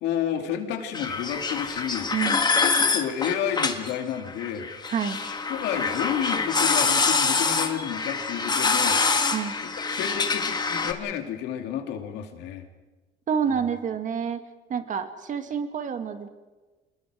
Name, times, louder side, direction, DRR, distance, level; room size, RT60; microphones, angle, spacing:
voice 1, 0.0-2.1 2.6-4.9 5.2-9.2 9.9-12.6, left 9 dB, 90° left, 5 dB, 2.5 m, -31 dB
sound 1, 0.9-10.9, left 4 dB, 25° left, 1.7 m, -25 dB
voice 2, 4.9-5.2 9.3-9.6 13.3-14.4 14.7-16.3, right 7 dB, 50° right, 8 dB, 1.9 m, -28 dB
27.0 x 21.0 x 5.0 m, 1.2 s
cardioid pair, 110°, 17 cm